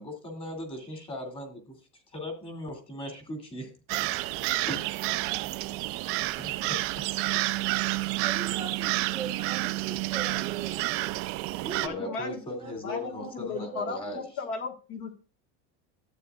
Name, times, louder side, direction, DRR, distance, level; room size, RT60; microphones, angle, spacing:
voice 1, 0.0-3.7 4.3-4.8 6.2-7.0 11.9-14.2, left 1 dB, 15° left, 2.6 m, -39 dB
sound 1, 3.9-11.9, right 19 dB, 45° right, 0.5 m, -29 dB
voice 2, 8.1-11.3 11.6-14.3, right 4 dB, 15° right, 1.1 m, -42 dB
voice 3, 11.8-12.4 12.8-15.1, left 4 dB, 40° left, 1.6 m, -36 dB
13.0 x 9.0 x 2.4 m
cardioid pair, 165°, 32 cm